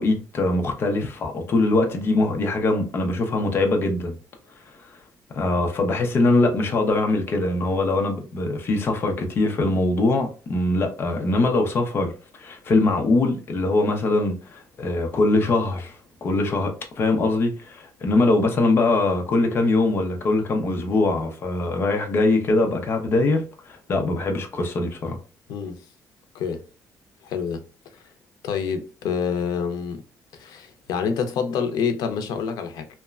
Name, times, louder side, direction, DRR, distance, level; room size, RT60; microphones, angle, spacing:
voice 1, 0.0-4.1 5.3-12.1 12.4-15.9 16.2-25.2, left 2 dB, 35° left, 0.6 m, -22 dB
voice 2, 27.2-27.6 28.4-30.0 30.3-32.9, left 6 dB, 90° left, 0.5 m, -27 dB
2.9 x 2.2 x 2.3 m
cardioid pair, 175°, 7 cm